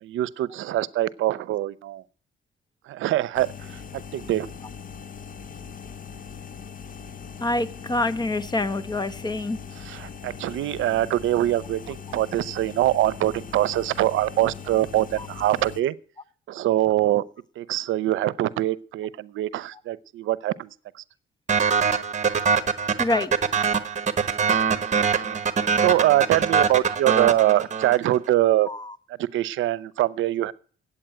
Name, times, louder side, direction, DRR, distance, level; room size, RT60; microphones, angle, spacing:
voice 1, 0.0-2.0 2.9-4.5 9.8-16.0 16.5-17.2 17.6-21.0 25.8-28.7 29.1-30.5, right 14 dB, 80° right, 0.7 m, -24 dB
sound 1, 3.3-15.8, left 6 dB, 45° left, 1.0 m, -40 dB
voice 2, 7.4-9.6 23.0-23.3 28.7-28.9, left 2 dB, 20° left, 1.1 m, -26 dB
sound 2, 21.5-28.2, right 6 dB, 35° right, 1.2 m, -23 dB
8.8 x 8.6 x 9.1 m
cardioid pair, 90°, 20 cm